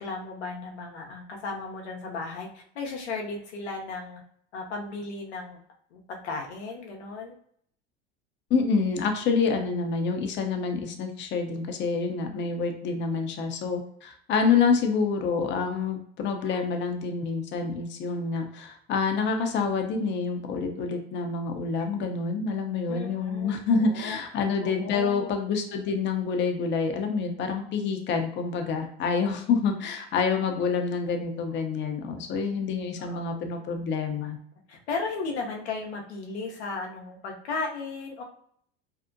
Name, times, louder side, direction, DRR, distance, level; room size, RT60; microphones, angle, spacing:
voice 1, 0.0-4.2 4.5-5.6 5.9-7.4 22.9-24.2 24.6-25.3 33.0-33.2 34.7-38.2, left 3 dB, 85° left, 1 dB, 0.6 m, -35 dB
voice 2, 8.5-34.4, left 5 dB, 35° left, 4 dB, 0.6 m, -27 dB
2.6 x 2.0 x 2.5 m, 0.65 s
hypercardioid pair, 80°, 33 cm